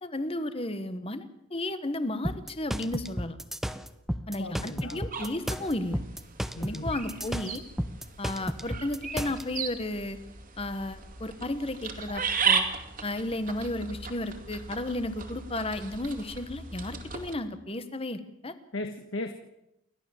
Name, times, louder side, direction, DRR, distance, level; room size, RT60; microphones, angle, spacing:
voice 1, 0.0-3.4 4.3-6.0 6.6-7.6 8.2-10.2 10.6-12.7 13.0-18.5, left 1 dB, 25° left, 11 dB, 1.3 m, -33 dB
sound 1, 2.2-9.4, equal, ahead, 0.7 m, -33 dB
voice 2, 4.4-5.1 6.5-7.0 18.7-19.3, left 2 dB, 60° left, 6 dB, 1.5 m, -37 dB
sound 2, 5.1-17.3, right 5 dB, 40° right, 2.3 m, -35 dB
29.0 x 12.0 x 7.3 m, 0.87 s
head